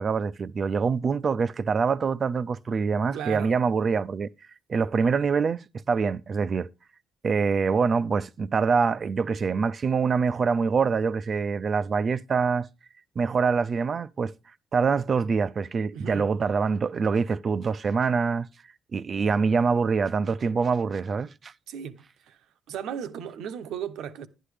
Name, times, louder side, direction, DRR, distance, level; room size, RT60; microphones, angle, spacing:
voice 1, 0.0-4.3 4.7-6.7 7.2-12.7 13.2-14.3 14.7-18.5 18.9-21.5, right 5 dB, 45° right, 0.4 m, -25 dB
voice 2, 3.1-3.6 15.9-16.3 21.7-22.4 22.7-24.3, right 8 dB, 85° right, 0.9 m, -36 dB
11.0 x 9.9 x 3.3 m
cardioid pair, 90°, 0 cm